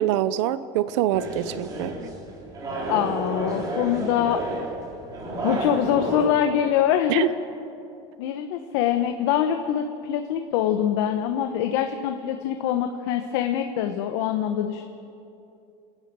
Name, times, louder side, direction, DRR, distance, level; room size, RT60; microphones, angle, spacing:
voice 1, 0.0-2.0 7.1-7.3, right 12 dB, 70° right, 15 dB, 0.7 m, -24 dB
sound 1, 1.1-6.2, right 2 dB, 25° right, 3.7 m, -31 dB
voice 2, 2.9-4.4 5.4-7.3 8.2-14.9, left 10 dB, 70° left, 6 dB, 1.2 m, -24 dB
28.5 x 11.0 x 9.1 m, 2.6 s
cardioid pair, 155°, 15 cm